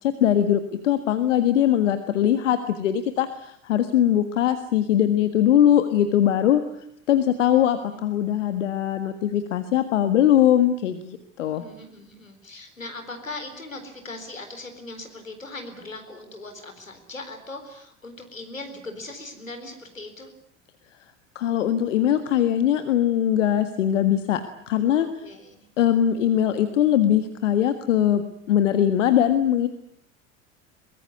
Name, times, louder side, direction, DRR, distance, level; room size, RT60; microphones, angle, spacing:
voice 1, 0.0-6.6 7.1-11.6 21.3-24.4 24.7-25.1 25.8-28.2 28.5-29.7, left 10 dB, 70° left, 10 dB, 1.7 m, -21 dB
voice 2, 7.3-8.1 11.5-20.3 24.8-25.7, left 2 dB, 85° left, 6 dB, 4.1 m, -40 dB
23.0 x 21.5 x 9.6 m, 0.68 s
figure-of-eight pair, 65°, 39 cm